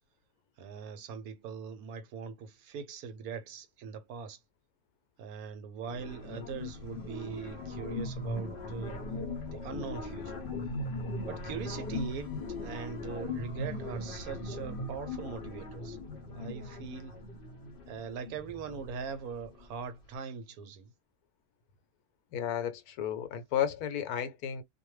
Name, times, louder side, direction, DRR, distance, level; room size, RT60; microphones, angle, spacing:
voice 1, 0.6-4.4 5.2-9.0 9.5-10.4 11.2-12.4 12.6-16.0 16.3-17.2 17.9-20.9, right 6 dB, 70° right, 1.1 m, -41 dB
sound 1, 5.9-19.7, left 2 dB, 50° left, 0.7 m, -39 dB
voice 2, 22.3-24.6, left 9 dB, 75° left, 1.1 m, -33 dB
2.6 x 2.2 x 3.0 m
omnidirectional pair, 1.7 m